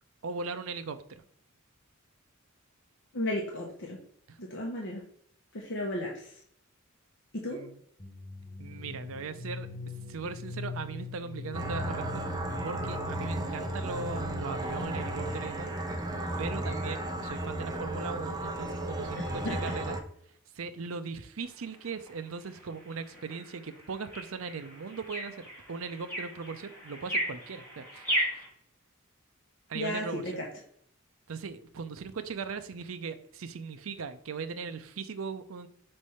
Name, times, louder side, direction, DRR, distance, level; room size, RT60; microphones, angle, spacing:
voice 1, 0.2-1.2 4.3-4.4 7.5-7.8 8.6-9.7 10.1-12.2 12.6-15.7 16.4-20.0 20.5-28.3 29.7-30.3 31.3-35.7, right 5 dB, 75° right, 10 dB, 0.5 m, -39 dB
voice 2, 3.1-4.0 4.4-5.0 5.5-6.3 7.4-7.6 19.2-19.6 29.7-30.5, left 1 dB, 60° left, -1 dB, 1.0 m, -34 dB
sound 1, 8.0-15.7, left 3 dB, 30° left, 1.0 m, -42 dB
sound 2, 11.5-20.0, right 1 dB, 20° right, 0.6 m, -34 dB
sound 3, 21.4-28.5, equal, 10° left, 2.1 m, -37 dB
5.2 x 3.3 x 5.6 m, 0.68 s
head